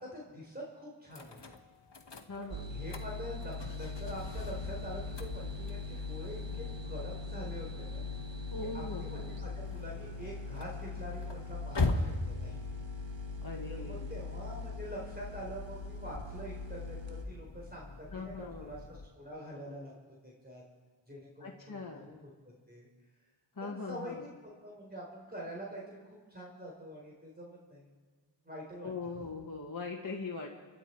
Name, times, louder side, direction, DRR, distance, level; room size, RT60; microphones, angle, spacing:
voice 1, 0.0-1.6 2.4-8.1 8.6-12.6 13.7-19.9 20.2-20.6 21.1-22.3 22.7-22.9 23.6-27.9 28.4-29.3, equal, 20° right, -3 dB, 4.2 m, -45 dB
sound 1, 1.1-19.1, left 3 dB, 65° left, 1.4 m, -42 dB
voice 2, 2.3-2.7 8.5-9.4 13.4-14.1 18.1-18.7 21.4-22.1 23.6-24.3 28.8-30.5, left 3 dB, 45° left, -1 dB, 1.5 m, -41 dB
sound 2, 2.5-17.3, left 3 dB, 70° right, 1.6 m, -41 dB
28.0 x 11.5 x 4.6 m, 1.5 s
wide cardioid pair, 40°, 46 cm